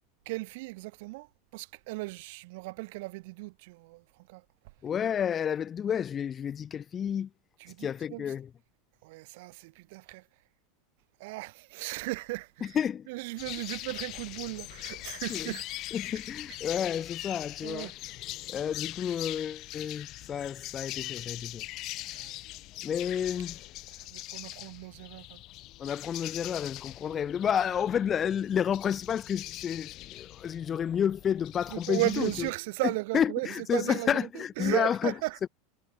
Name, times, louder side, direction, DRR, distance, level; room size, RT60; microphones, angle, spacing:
voice 1, 0.3-1.3 1.5-4.0 4.3-4.4 7.6-8.2 9.0-10.2 11.2-12.8 13.1-15.6 17.6-17.9 22.0-22.4 24.0-25.4 31.7-35.4, right 23 dB, 65° right, 2.2 m, -36 dB
voice 2, 4.8-7.3 7.8-8.5 12.6-13.1 15.3-15.6 15.9-17.9 18.5-21.6 22.8-23.6 25.8-32.5 33.1-35.1 35.4-35.5, left 8 dB, 25° left, 1.2 m, -30 dB
sound 1, 13.4-32.5, left 18 dB, 40° left, 0.9 m, -42 dB
supercardioid pair, 145°, 0 cm